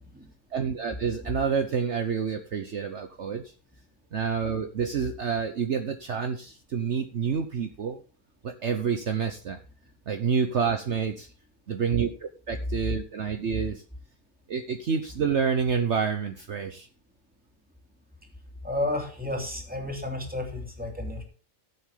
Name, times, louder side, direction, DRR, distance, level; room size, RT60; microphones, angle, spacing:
voice 1, 0.5-3.5 4.1-8.0 8.4-9.6 10.1-11.3 11.7-13.8 14.5-16.9, right 6 dB, 55° right, 6 dB, 1.2 m, -28 dB
voice 2, 18.6-21.2, left 2 dB, 5° right, 2 dB, 2.7 m, -32 dB
14.5 x 7.9 x 3.7 m, 0.37 s
omnidirectional pair, 1.5 m